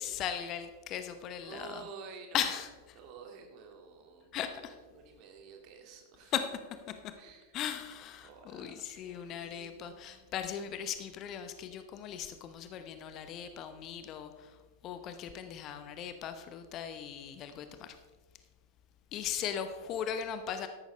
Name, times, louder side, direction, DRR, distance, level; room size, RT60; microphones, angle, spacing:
voice 1, 0.0-1.8 2.3-3.0 4.3-4.7 6.3-6.5 6.9-7.1 7.5-14.6 14.8-18.0 19.1-20.7, left 9 dB, 35° left, 9 dB, 0.9 m, -38 dB
voice 2, 1.4-2.6 2.9-4.6 4.9-6.3 7.2-7.6 8.2-10.3 15.1-15.5, right 5 dB, 40° right, 3 dB, 2.2 m, -51 dB
13.5 x 11.5 x 3.3 m, 1.3 s
figure-of-eight pair, 90°, 0 cm